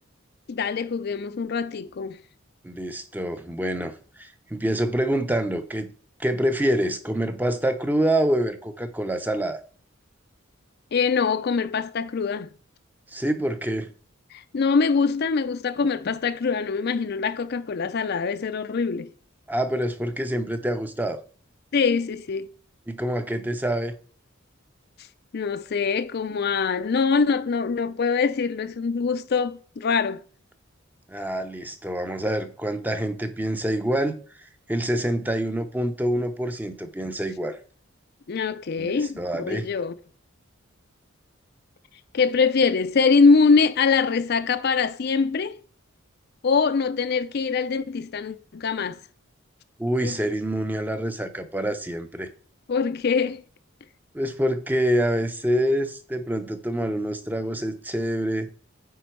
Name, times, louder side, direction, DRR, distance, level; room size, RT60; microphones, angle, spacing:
voice 1, 0.5-2.2 10.9-12.5 14.3-19.1 21.7-22.5 25.3-30.2 38.3-40.0 42.1-45.6 46.4-49.0 50.0-50.2 52.7-53.4, left 5 dB, 50° left, 0.4 m, -23 dB
voice 2, 2.6-5.9 6.2-9.6 13.1-13.9 19.5-21.2 22.9-23.9 31.1-37.6 38.8-39.7 49.8-52.3 54.1-58.5, right 1 dB, 10° right, 0.6 m, -26 dB
9.4 x 4.4 x 4.5 m
head